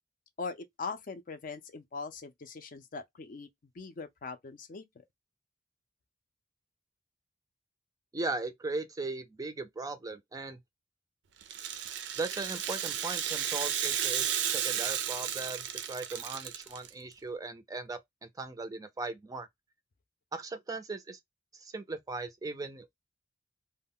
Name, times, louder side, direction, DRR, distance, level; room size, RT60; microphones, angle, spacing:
voice 1, 0.4-3.5 3.8-4.8, left 4 dB, 50° left, 0.4 m, -41 dB
voice 2, 8.1-10.6 12.2-19.5 20.3-21.2 21.5-23.0, right 3 dB, 20° right, 0.4 m, -38 dB
Rattle (instrument), 11.4-16.9, right 9 dB, 80° right, 0.4 m, -33 dB
2.2 x 2.1 x 3.5 m
head